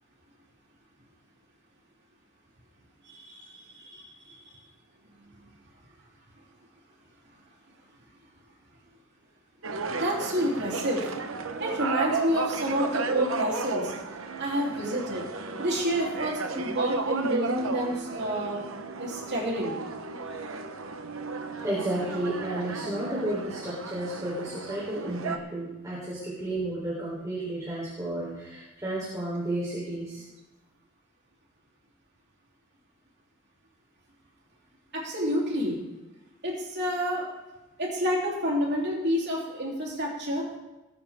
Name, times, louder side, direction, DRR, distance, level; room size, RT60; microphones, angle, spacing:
voice 1, 3.0-4.6 5.2-5.3 9.9-11.1 11.6-13.9 14.4-15.2 15.6-18.7 19.0-19.7 25.8-25.9 34.9-35.8 36.4-37.3 37.8-40.4, equal, 55° right, -3 dB, 3.3 m, -29 dB
sound 1, 9.6-25.4, right 4 dB, 75° right, 1.1 m, -34 dB
voice 2, 21.6-30.2, right 1 dB, 15° right, -6 dB, 3.7 m, -32 dB
20.5 x 9.7 x 3.7 m, 1.0 s
head